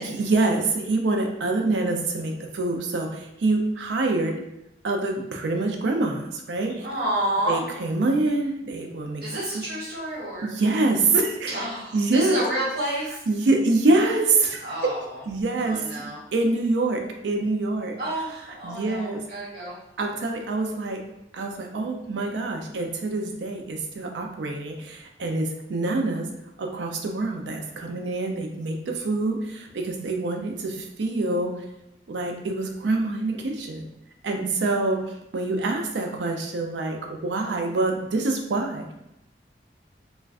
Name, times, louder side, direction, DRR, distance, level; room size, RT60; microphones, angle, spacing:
voice 1, 0.0-4.3 4.8-6.9 7.5-9.2 10.4-11.6 11.9-12.4 13.3-14.7 15.3-15.8 16.3-18.0 18.6-19.2 20.0-21.0 21.3-26.3 26.6-31.5 32.1-33.9 34.2-38.9, right 2 dB, 85° right, 3 dB, 0.4 m, -25 dB
voice 2, 6.8-7.6 9.2-10.5 11.5-13.2 14.6-15.2 15.6-16.2 18.0-19.7, right 1 dB, 60° right, -7 dB, 1.0 m, -29 dB
2.4 x 2.2 x 3.4 m, 0.87 s
head